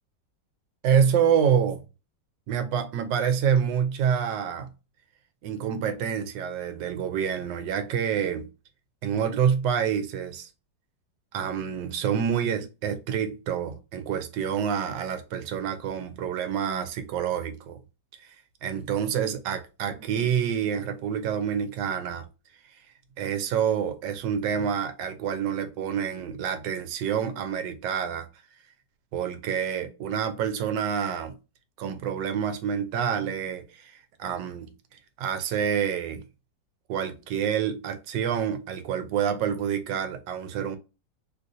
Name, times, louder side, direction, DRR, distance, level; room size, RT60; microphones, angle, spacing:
voice 1, 0.8-1.8 2.5-4.7 5.4-8.5 9.0-10.5 11.3-17.8 18.6-22.2 23.2-28.3 29.1-31.3 31.8-34.7 35.2-36.2 36.9-40.8, right 8 dB, 85° right, 1.3 m, -27 dB
3.2 x 2.6 x 2.5 m
omnidirectional pair, 1.9 m